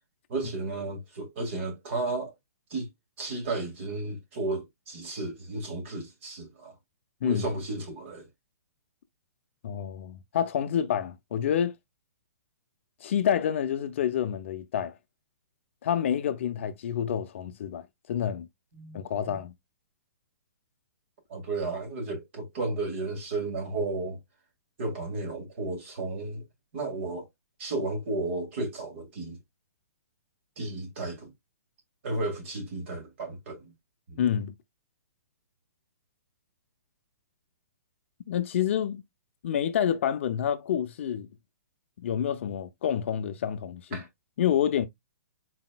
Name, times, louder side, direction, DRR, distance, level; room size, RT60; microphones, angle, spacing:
voice 1, 0.3-2.3 2.7-2.9 3.2-6.7 7.2-8.3 18.7-19.0 19.3-19.4 21.3-24.2 24.8-26.4 26.7-27.3 27.6-29.4 30.6-31.3 32.0-33.6 34.1-34.2 43.9-44.1, right 2 dB, 45° right, 1.9 m, -33 dB
voice 2, 9.6-11.7 13.0-14.9 15.8-18.5 18.9-19.5 34.2-34.5 38.3-39.0 39.4-41.3 42.0-44.0 44.4-44.9, left 9 dB, 45° left, 0.5 m, -28 dB
4.2 x 4.0 x 2.2 m
hypercardioid pair, 160°, 9 cm